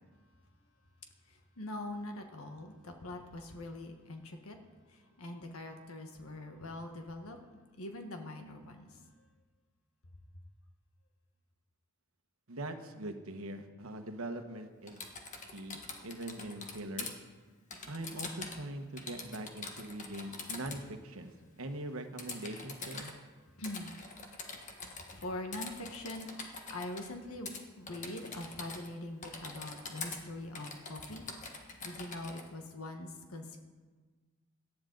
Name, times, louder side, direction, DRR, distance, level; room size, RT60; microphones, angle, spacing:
voice 1, 1.3-4.6 4.9-7.4 7.8-9.0 23.6-24.0 25.1-27.5 27.8-33.6, left 1 dB, 80° left, 4 dB, 1.4 m, -43 dB
voice 2, 12.5-15.0 15.5-17.1 17.9-21.3 21.6-23.1, right 1 dB, 80° right, 6 dB, 1.3 m, -42 dB
Typing, 14.9-17.1 17.7-18.7 19.0-20.8 22.2-23.1 23.6-25.2 25.5-27.1 27.5-27.6 27.9-28.9 29.2-30.2 30.5-32.4, left 4 dB, 35° left, 1.5 m, -44 dB
18.0 x 12.0 x 4.0 m, 1.4 s
head